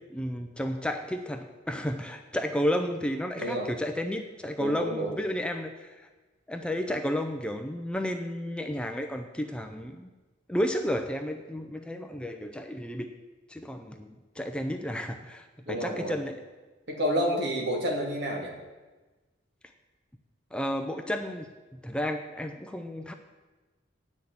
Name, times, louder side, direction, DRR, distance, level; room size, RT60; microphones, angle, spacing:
voice 1, 0.0-6.1 6.5-10.1 10.5-13.1 13.5-16.4 20.5-23.1, equal, 5° left, 6 dB, 0.5 m, -32 dB
voice 2, 3.4-3.7 4.6-5.1 15.7-16.1 16.9-18.5, equal, 60° right, -1 dB, 2.5 m, -29 dB
9.6 x 6.4 x 8.6 m, 1.2 s
head